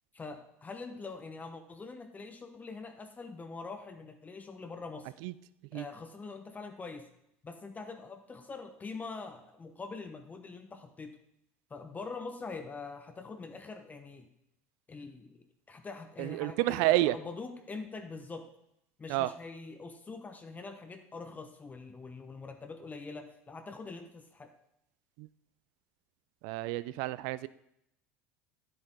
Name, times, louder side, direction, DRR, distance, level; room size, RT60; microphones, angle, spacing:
voice 1, 0.1-5.1 5.7-7.1 7.4-11.2 11.7-14.3 14.9-18.5 19.0-24.5, left 4 dB, 25° left, 6 dB, 1.0 m, -44 dB
voice 2, 16.2-17.1 19.1-19.3 25.2-25.3 26.4-27.5, right 17 dB, 65° right, 17 dB, 0.4 m, -29 dB
10.0 x 7.8 x 3.8 m, 0.80 s
hypercardioid pair, 75°, 7 cm